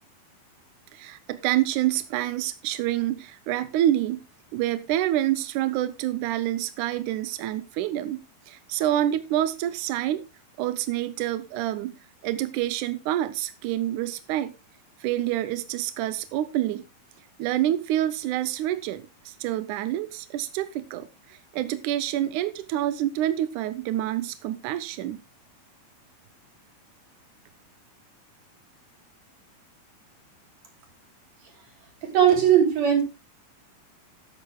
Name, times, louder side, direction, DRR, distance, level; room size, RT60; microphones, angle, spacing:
voice 1, 0.9-4.2 4.5-10.2 10.6-11.9 12.2-14.5 15.0-16.8 17.4-25.2, right 13 dB, 80° right, 1.8 m, -27 dB
voice 2, 32.0-33.0, right 9 dB, 50° right, 4.1 m, -19 dB
13.0 x 11.0 x 2.3 m
omnidirectional pair, 4.3 m